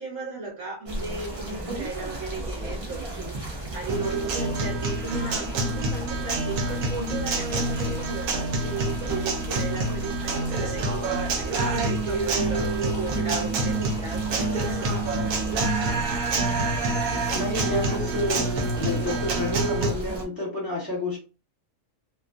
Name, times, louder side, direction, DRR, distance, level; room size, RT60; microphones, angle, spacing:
voice 1, 0.0-15.1, right 3 dB, 65° right, -1 dB, 1.2 m, -35 dB
sound 1, 0.8-20.2, right 1 dB, 45° right, 0.4 m, -35 dB
Guitar, 3.9-19.9, right 3 dB, 85° right, 1.0 m, -27 dB
voice 2, 17.3-21.2, left 2 dB, 15° left, -6 dB, 1.1 m, -30 dB
2.4 x 2.2 x 2.4 m, 0.34 s
omnidirectional pair, 1.5 m